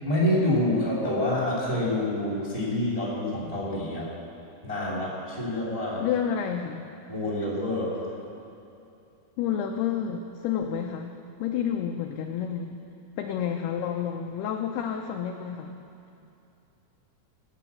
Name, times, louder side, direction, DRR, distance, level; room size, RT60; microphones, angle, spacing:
voice 1, 0.0-4.1 4.6-6.0 7.1-8.0, left 1 dB, 10° right, -5 dB, 1.7 m, -27 dB
voice 2, 6.0-6.9 9.4-11.1 11.4-12.7 13.2-15.7, left 8 dB, 85° left, 4 dB, 2.3 m, -29 dB
16.0 x 9.3 x 7.0 m, 2.7 s
omnidirectional pair, 5.3 m